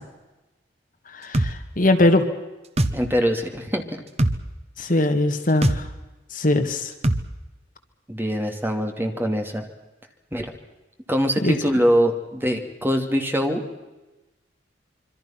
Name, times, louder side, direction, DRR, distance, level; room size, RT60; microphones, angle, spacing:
voice 1, 1.1-2.2 4.8-5.8 6.3-6.9 11.4-11.5, left 2 dB, 45° left, 6 dB, 2.0 m, -20 dB
sound 1, 1.3-1.5 2.8-3.0 4.2-4.4 5.6-5.8 7.0-7.2, right 1 dB, 35° right, 1.3 m, -20 dB
voice 2, 2.9-3.8 8.1-9.6 10.3-10.5 11.1-13.8, equal, 10° right, 3 dB, 2.7 m, -23 dB
26.0 x 24.5 x 6.0 m, 1.1 s
head